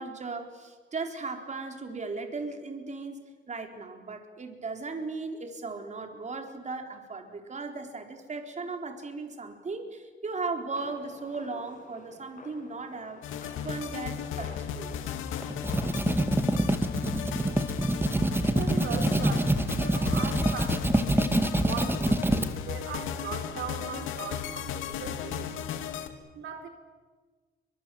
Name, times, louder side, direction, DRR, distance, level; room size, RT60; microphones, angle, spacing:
voice 1, 0.0-13.2 13.6-15.2, right 3 dB, 35° right, 4 dB, 4.2 m, -37 dB
sound 1, 10.7-18.5, left 4 dB, 40° left, 7.0 m, -50 dB
sound 2, 13.2-26.1, left 8 dB, 90° left, 2.5 m, -35 dB
sound 3, 15.4-22.5, right 1 dB, 10° right, 2.0 m, -26 dB
voice 2, 18.5-25.5 26.3-26.7, right 6 dB, 75° right, 7 dB, 3.7 m, -39 dB
30.0 x 24.0 x 7.9 m, 1.4 s
cardioid pair, 90°, 20 cm